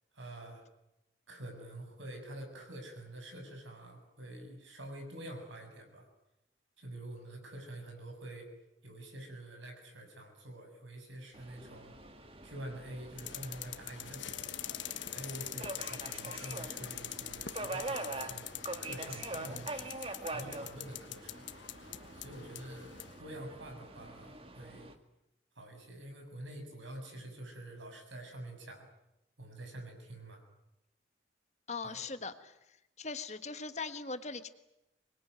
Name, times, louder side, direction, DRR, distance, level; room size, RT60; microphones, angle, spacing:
voice 1, 0.1-0.7 1.3-6.1 6.8-8.5 8.8-11.9 12.4-14.5 15.1-18.5 18.8-19.7 20.2-21.4 22.1-24.9 25.6-28.9 29.4-30.4 31.8-32.0, right 1 dB, 85° right, 4 dB, 7.2 m, -47 dB
Subway metro underground, 11.3-24.9, right 2 dB, 30° right, 2.0 m, -44 dB
sound 1, 13.2-23.2, left 11 dB, 80° left, 1.3 m, -44 dB
voice 2, 31.7-32.6 33.0-34.5, left 4 dB, 35° left, 9 dB, 1.5 m, -40 dB
25.5 x 21.5 x 9.4 m, 0.89 s
head